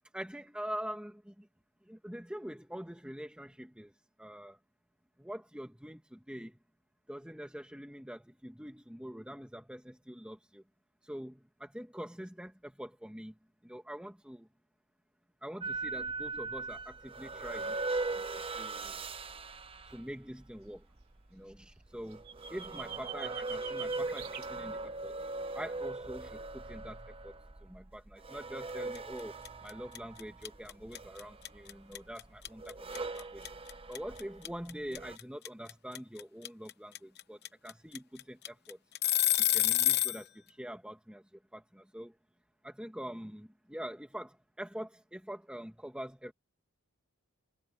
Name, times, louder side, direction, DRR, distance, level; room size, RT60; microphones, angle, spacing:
voice 1, 0.1-1.5 1.9-3.9 4.2-4.6 5.2-6.6 7.1-10.6 11.0-13.3 13.6-14.5 15.4-17.8 18.2-19.0 19.9-20.8 21.3-22.2 22.5-25.2 25.5-27.4 27.6-29.3 29.6-33.4 33.9-38.8 39.4-41.2 41.5-42.1 42.6-46.3, equal, 5° right, 1.6 m, -44 dB
sound 1, 15.6-35.2, right 3 dB, 25° right, 0.8 m, -40 dB
sound 2, 22.1-24.5, right 9 dB, 45° right, 3.7 m, -44 dB
sound 3, 28.9-29.2 29.4-40.2, left 14 dB, 50° left, 0.9 m, -29 dB
head